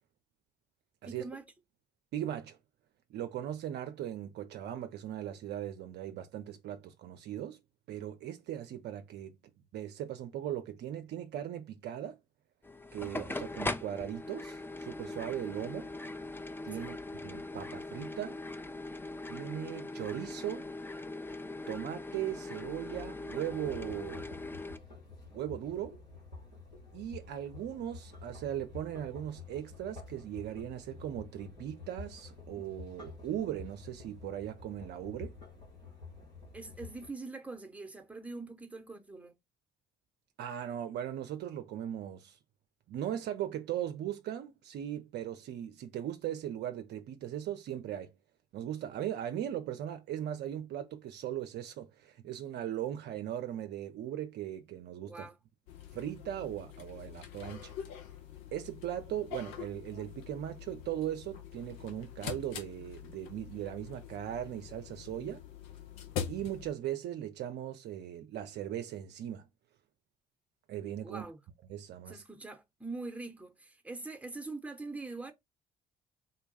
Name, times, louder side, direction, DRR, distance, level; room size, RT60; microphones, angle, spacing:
voice 1, 1.0-1.4 16.7-16.9 36.5-39.3 55.1-55.4 71.0-71.4 72.1-75.3, right 3 dB, 5° right, 0.9 m, -43 dB
voice 2, 2.1-2.6 3.1-7.6 7.9-9.3 9.7-12.2 12.9-15.9 16.6-18.4 19.3-20.7 21.7-24.3 25.3-26.0 26.9-35.4 40.4-42.4 42.9-48.1 48.5-55.3 55.9-57.7 58.5-65.4 66.3-69.4 70.7-71.3 71.7-72.2, right 11 dB, 55° right, 0.5 m, -38 dB
sound 1, 12.6-24.8, left 2 dB, 10° left, 0.4 m, -41 dB
sound 2, 23.4-37.1, left 3 dB, 85° left, 1.5 m, -49 dB
sound 3, 55.7-66.7, left 8 dB, 65° left, 0.7 m, -44 dB
3.8 x 2.2 x 3.9 m
figure-of-eight pair, 45°, 21 cm